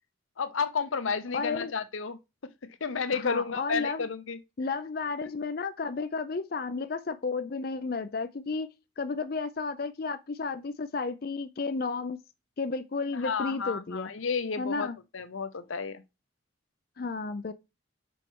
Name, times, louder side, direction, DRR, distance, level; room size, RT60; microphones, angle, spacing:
voice 1, 0.4-2.2 2.6-4.4 13.1-14.9 15.1-16.0, left 5 dB, 85° left, 0.7 m, -31 dB
voice 2, 1.3-1.7 3.1-4.1 4.6-8.7 9.0-12.2 12.6-14.1 14.6-15.0 17.0-17.5, left 4 dB, 50° left, 0.5 m, -32 dB
6.2 x 4.4 x 4.6 m
head